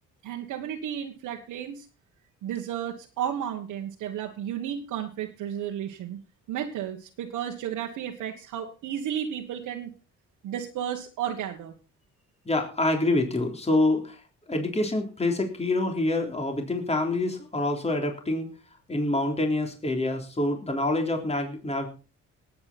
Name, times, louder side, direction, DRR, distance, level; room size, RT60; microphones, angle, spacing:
voice 1, 0.2-1.8 2.4-6.2 6.5-9.9 10.4-11.7, right 9 dB, 85° right, 1 dB, 1.6 m, -33 dB
voice 2, 12.5-14.2 14.5-18.5 18.9-21.9, left 2 dB, 20° left, 4 dB, 3.5 m, -26 dB
18.5 x 8.7 x 4.3 m, 0.33 s
cardioid pair, 90°, 30 cm